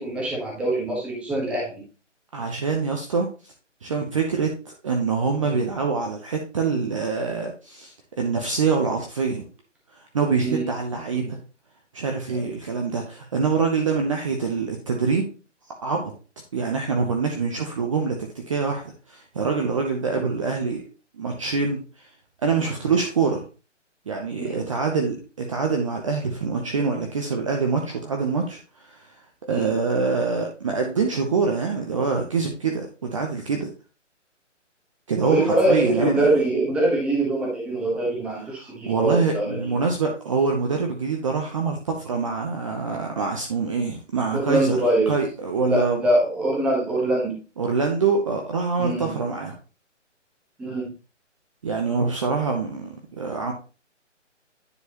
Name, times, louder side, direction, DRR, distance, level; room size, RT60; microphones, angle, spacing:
voice 1, 0.0-1.8 10.4-10.7 12.3-12.5 24.4-24.6 29.5-29.7 35.2-39.6 44.3-45.1 45.6-47.4 48.8-49.1 50.6-50.9, right 1 dB, 5° right, -3 dB, 1.0 m, -23 dB
voice 2, 2.3-3.3 3.8-9.4 10.1-11.4 11.9-15.3 15.8-16.1 16.5-18.8 19.1-20.8 21.2-22.1 22.4-23.4 24.1-29.1 29.4-33.7 35.1-36.2 38.5-44.8 45.1-46.0 47.6-49.6 51.6-53.5, right 5 dB, 25° right, 2 dB, 0.7 m, -25 dB
9.7 x 4.6 x 2.9 m, 0.34 s
hypercardioid pair, 155°, 37 cm